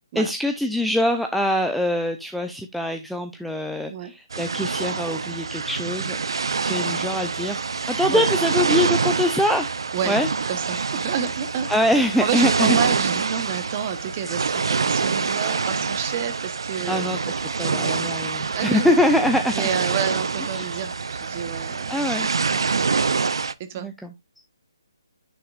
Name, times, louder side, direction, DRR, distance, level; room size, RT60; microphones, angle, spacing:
voice 1, 0.1-6.2 6.6-7.6 7.9-9.7 10.0-10.3 11.7-12.8 16.9-17.2 17.6-19.7 20.5-20.8 21.9-22.3 23.8-24.1, left 1 dB, ahead, 0.4 m, -23 dB
sound 1, 4.3-23.5, right 4 dB, 75° right, 0.6 m, -26 dB
voice 2, 10.5-11.7 12.2-17.0 17.6-18.0 18.5-18.9 19.5-22.1 23.7-23.9, right 8 dB, 25° right, 1.0 m, -29 dB
9.7 x 5.8 x 2.4 m
hypercardioid pair, 165°, 2 cm